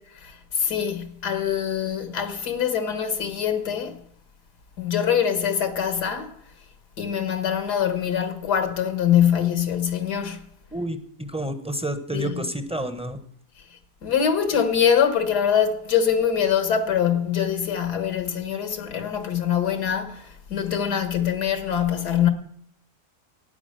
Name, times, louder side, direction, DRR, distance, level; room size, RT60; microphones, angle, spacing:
voice 1, 0.2-4.0 4.8-6.3 7.0-10.4 12.1-12.4 14.0-22.3, left 8 dB, 85° left, 2.0 m, -24 dB
voice 2, 10.7-13.2, right 1 dB, 5° right, 0.6 m, -29 dB
12.0 x 9.4 x 6.7 m
omnidirectional pair, 1.7 m